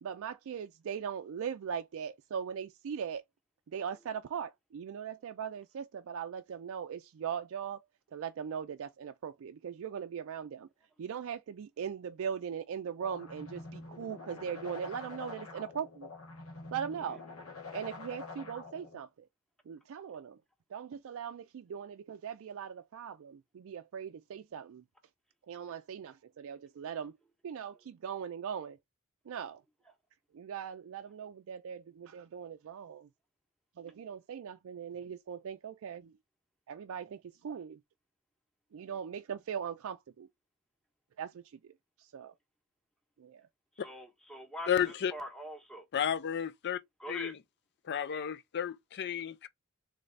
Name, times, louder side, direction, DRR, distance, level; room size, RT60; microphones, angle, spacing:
voice 1, 0.0-3.2 3.7-7.8 8.1-10.7 11.0-16.1 16.7-17.2 17.7-19.3 19.7-20.4 20.7-24.8 25.5-27.1 27.4-28.8 29.3-29.6 30.3-33.1 33.8-36.1 36.7-37.8 38.7-40.3 41.2-41.7 42.0-42.3 43.2-43.5, right 7 dB, 65° right, 0.4 m, -40 dB
sound 1, 13.0-19.0, left 3 dB, 85° left, 1.4 m, -46 dB
voice 2, 43.8-45.9 47.0-47.3, equal, 5° left, 1.1 m, -44 dB
voice 3, 44.7-45.1 45.9-46.8 47.1-47.3 47.9-49.5, left 8 dB, 50° left, 0.4 m, -32 dB
3.9 x 3.2 x 3.2 m
head